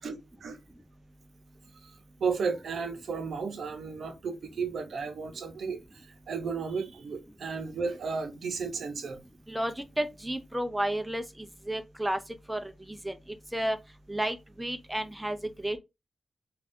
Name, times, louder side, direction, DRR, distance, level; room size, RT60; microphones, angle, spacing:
voice 1, 0.0-0.6 1.8-9.2, right 5 dB, 80° right, 0.6 m, -34 dB
voice 2, 9.5-11.2 11.7-12.2 12.5-12.7 13.0-13.2 13.5-13.8 14.1-15.8, right 1 dB, 5° right, 0.4 m, -31 dB
2.5 x 2.3 x 3.4 m
wide cardioid pair, 125°, 0 cm